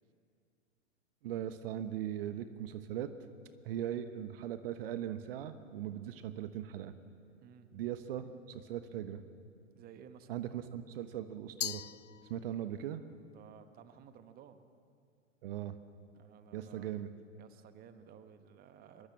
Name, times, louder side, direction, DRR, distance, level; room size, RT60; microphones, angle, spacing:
voice 1, 1.2-3.1 3.6-6.9 7.7-9.2 10.3-11.8 12.3-13.0 15.4-15.7 16.5-17.1, right 11 dB, 45° right, 10 dB, 1.3 m, -39 dB
voice 2, 9.7-10.3 13.3-14.6 16.1-16.9 17.4-19.1, right 8 dB, 25° right, 10 dB, 1.3 m, -55 dB
Glass, 11.6-12.8, left 10 dB, 70° left, 0.5 m, -41 dB
24.5 x 22.0 x 7.3 m, 2.3 s
figure-of-eight pair, 100°, 38 cm